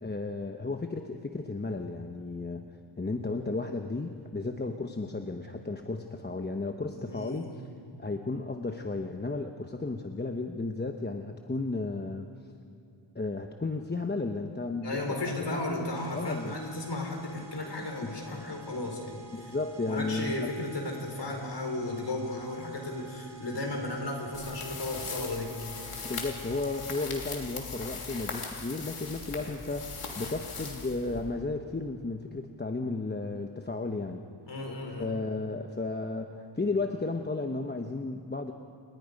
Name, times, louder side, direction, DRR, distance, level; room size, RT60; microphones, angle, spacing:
voice 1, 0.0-2.7 3.0-7.7 8.0-12.3 13.1-15.6 16.1-16.6 18.0-18.1 18.8-18.9 19.3-20.5 26.0-34.2 35.0-38.5, left 3 dB, 20° left, 4 dB, 1.0 m, -34 dB
voice 2, 6.9-7.6 14.8-19.5 19.8-25.5 29.4-29.6 34.5-35.1, left 2 dB, 55° left, 1 dB, 4.6 m, -35 dB
sound 1, 15.9-27.4, right 3 dB, 60° right, 3.6 m, -51 dB
sound 2, 24.3-31.5, left 4 dB, 85° left, 3.1 m, -40 dB
28.5 x 20.5 x 5.3 m, 2.5 s
wide cardioid pair, 95°, 49 cm